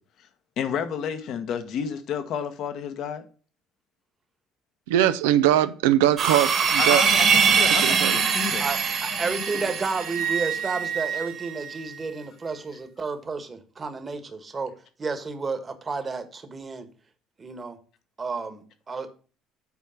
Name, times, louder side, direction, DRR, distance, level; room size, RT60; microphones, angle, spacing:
voice 1, 0.6-3.2 6.8-8.7 9.5-9.6, left 8 dB, 65° left, 1.2 m, -31 dB
voice 2, 4.9-7.0 7.8-8.2, right 12 dB, 85° right, 0.6 m, -21 dB
sound 1, 6.2-10.6, right 6 dB, 50° right, 1.9 m, -22 dB
voice 3, 8.6-14.7 15.0-16.9 17.4-17.8 18.2-19.1, right 4 dB, 30° right, 1.4 m, -31 dB
Wind instrument woodwind instrument, 9.1-12.6, right 8 dB, 70° right, 1.6 m, -32 dB
8.3 x 4.6 x 5.6 m
hypercardioid pair, 65°, 0 cm